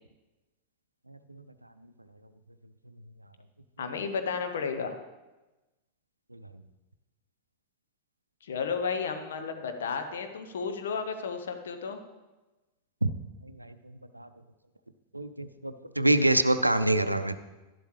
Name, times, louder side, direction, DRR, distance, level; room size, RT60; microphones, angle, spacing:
voice 1, 1.1-1.4 6.3-6.4 13.0-13.1 13.4-13.7 14.1-14.3 15.1-17.4, right 1 dB, 85° right, 12 dB, 0.5 m, -26 dB
voice 2, 3.8-4.9 8.4-12.0, left 5 dB, 65° left, 6 dB, 1.0 m, -33 dB
11.5 x 11.0 x 3.2 m, 1.1 s
figure-of-eight pair, 90°, 0 cm